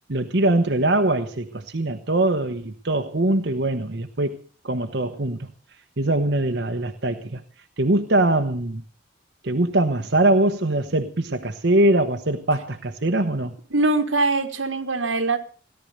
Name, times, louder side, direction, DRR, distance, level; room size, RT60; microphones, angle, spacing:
voice 1, 0.1-4.4 4.6-5.5 6.0-7.4 7.8-8.8 9.4-13.5, right 1 dB, 60° right, 6 dB, 1.1 m, -22 dB
voice 2, 13.7-15.4, right 2 dB, 90° right, 7 dB, 2.0 m, -22 dB
17.5 x 12.0 x 6.6 m, 0.41 s
head